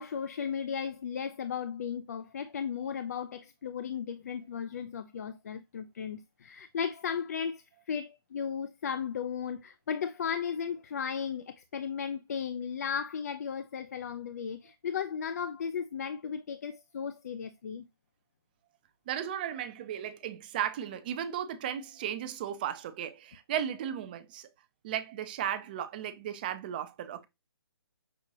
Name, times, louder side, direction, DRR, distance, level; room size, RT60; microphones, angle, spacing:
voice 1, 0.0-17.8, left 7 dB, 40° left, 0.4 m, -35 dB
voice 2, 19.1-24.5 24.8-27.3, right 10 dB, 20° right, 0.5 m, -35 dB
6.1 x 2.8 x 2.7 m
hypercardioid pair, 160°, 13 cm